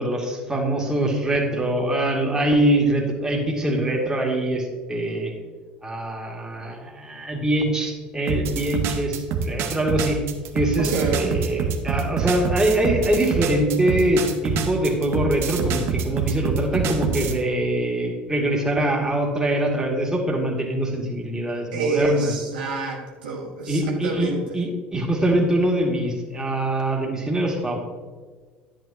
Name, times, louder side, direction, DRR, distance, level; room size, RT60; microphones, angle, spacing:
voice 1, 0.0-5.3 5.8-10.2 10.5-22.3 23.7-27.8, right 1 dB, 15° right, -1 dB, 2.4 m, -23 dB
sound 1, 8.3-17.4, right 6 dB, 55° right, 1.0 m, -26 dB
voice 2, 10.9-11.2 21.7-24.6, right 3 dB, 75° right, -1 dB, 1.6 m, -27 dB
10.5 x 8.6 x 3.0 m, 1.5 s
hypercardioid pair, 65°, 5 cm